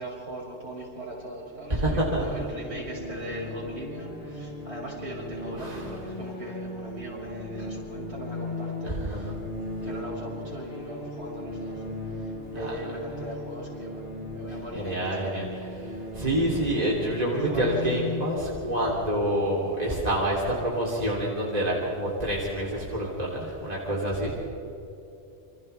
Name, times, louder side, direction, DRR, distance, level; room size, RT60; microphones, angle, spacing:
voice 1, 0.0-9.3 9.8-14.0 14.3-15.6 17.3-17.8, right 1 dB, 70° right, -4 dB, 6.4 m, -39 dB
sound 1, 1.5-20.2, left 2 dB, 55° left, 4.4 m, -37 dB
voice 2, 1.7-2.2 5.6-5.9 8.9-9.3 12.6-12.8 14.8-24.5, right 1 dB, 35° right, -4 dB, 3.6 m, -27 dB
28.0 x 26.0 x 3.5 m, 2.9 s
omnidirectional pair, 1.2 m